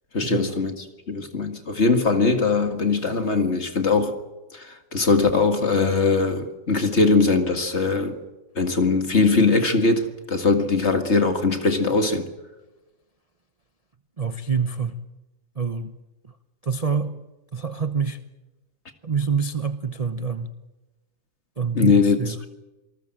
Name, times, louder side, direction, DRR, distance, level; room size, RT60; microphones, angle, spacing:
voice 1, 0.1-0.7 1.1-4.1 4.5-8.2 8.6-12.3 21.7-22.5, left 4 dB, 35° left, 2.2 m, -21 dB
voice 2, 14.2-15.0 15.6-16.0 16.6-17.2 17.5-18.2 19.0-20.5 21.6-22.4, right 5 dB, 30° right, 0.7 m, -26 dB
27.5 x 20.0 x 7.7 m
omnidirectional pair, 2.0 m